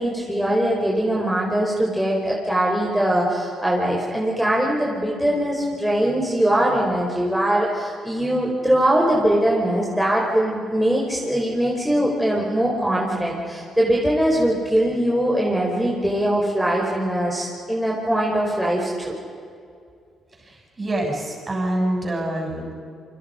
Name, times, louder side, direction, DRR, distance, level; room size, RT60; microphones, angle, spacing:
voice 1, 0.0-19.2, right 1 dB, ahead, -4 dB, 4.8 m, -21 dB
voice 2, 20.4-22.7, right 1 dB, 30° right, 0 dB, 7.7 m, -26 dB
28.5 x 25.0 x 5.3 m, 2.3 s
cardioid pair, 90°, 0 cm